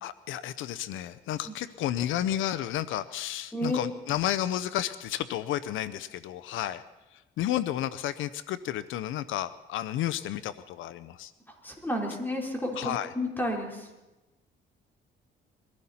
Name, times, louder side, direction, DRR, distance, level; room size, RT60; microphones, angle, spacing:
voice 1, 0.0-6.8 7.1-11.3 12.7-13.1, left 12 dB, 85° left, 15 dB, 0.6 m, -32 dB
voice 2, 11.5-13.9, left 1 dB, 10° left, 0 dB, 4.1 m, -31 dB
23.0 x 15.0 x 4.3 m, 1.1 s
cardioid pair, 90°, 20 cm